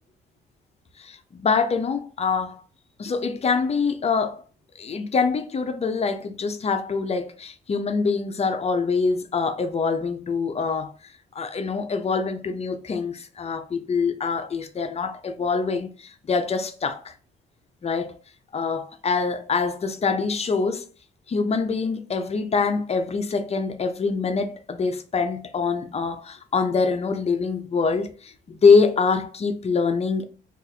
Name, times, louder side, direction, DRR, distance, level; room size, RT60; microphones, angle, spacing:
voice 1, 1.0-2.6 3.0-4.4 4.8-10.9 11.3-17.1 17.8-18.1 18.5-20.8 21.3-30.2, left 4 dB, 30° left, 0.5 m, -24 dB
2.5 x 2.4 x 4.1 m
cardioid pair, 90°, 20 cm